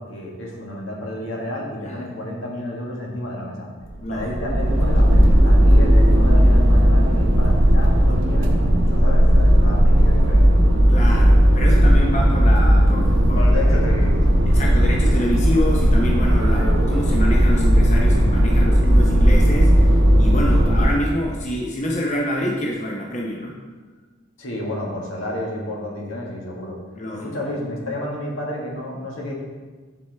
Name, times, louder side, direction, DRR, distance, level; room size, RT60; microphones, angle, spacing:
voice 1, 0.0-3.7 4.1-10.6 13.3-14.2 24.4-26.7 27.1-29.3, left 1 dB, 80° left, -2 dB, 1.6 m, -30 dB
sound 1, 3.8-21.1, equal, 75° right, 0.9 m, -15 dB
voice 2, 10.9-13.5 14.5-19.7 20.2-23.6 26.9-27.3, equal, 35° left, -2 dB, 0.7 m, -26 dB
9.8 x 4.5 x 3.4 m, 1.4 s
head